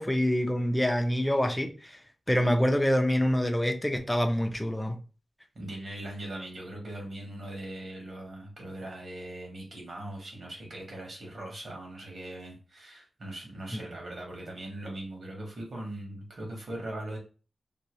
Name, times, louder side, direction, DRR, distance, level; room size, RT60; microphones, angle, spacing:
voice 1, 0.0-2.0 2.3-5.0 13.7-13.8, equal, 5° left, 5 dB, 0.4 m, -26 dB
voice 2, 5.5-17.2, right 1 dB, 50° right, 0 dB, 1.2 m, -40 dB
2.7 x 2.6 x 3.0 m, 0.35 s
wide cardioid pair, 155°, 0 cm